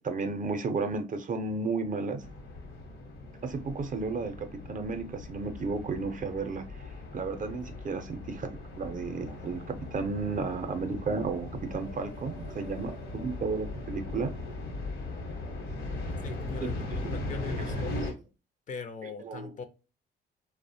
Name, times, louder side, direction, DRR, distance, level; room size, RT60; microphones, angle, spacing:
voice 1, 0.0-2.2 3.4-6.9 7.1-14.3 16.6-17.2 17.6-18.1 19.0-19.5, right 4 dB, 40° right, 0.5 m, -33 dB
sound 1, 2.2-18.1, left 2 dB, 80° left, 0.9 m, -39 dB
voice 2, 16.2-17.9 18.7-19.7, left 5 dB, 40° left, 0.4 m, -41 dB
2.7 x 2.1 x 2.6 m
cardioid pair, 90°, 20 cm